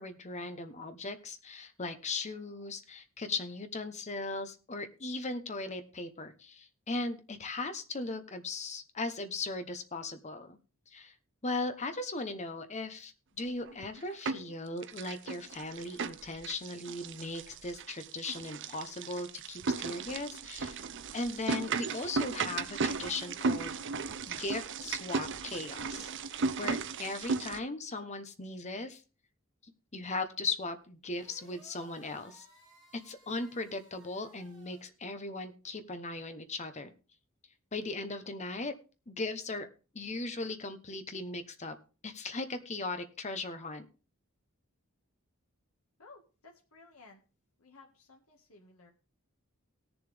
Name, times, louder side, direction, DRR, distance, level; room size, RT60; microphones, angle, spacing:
voice 1, 0.0-10.6 10.9-11.1 11.4-20.8 21.1-23.8 24.3-29.0 29.6-32.5 32.9-36.9 37.7-38.8 39.1-39.7 39.9-41.7 42.0-43.9, left 3 dB, 30° left, 8 dB, 1.0 m, -38 dB
sound 1, 13.7-14.5 14.8-27.6, right 4 dB, 55° right, 0.7 m, -36 dB
sound 2, 31.1-34.8, right 1 dB, ahead, 7.7 m, -60 dB
voice 2, 46.0-47.2 47.6-48.9, left 3 dB, 80° left, 1 dB, 1.7 m, -57 dB
18.0 x 7.1 x 3.4 m, 0.34 s
head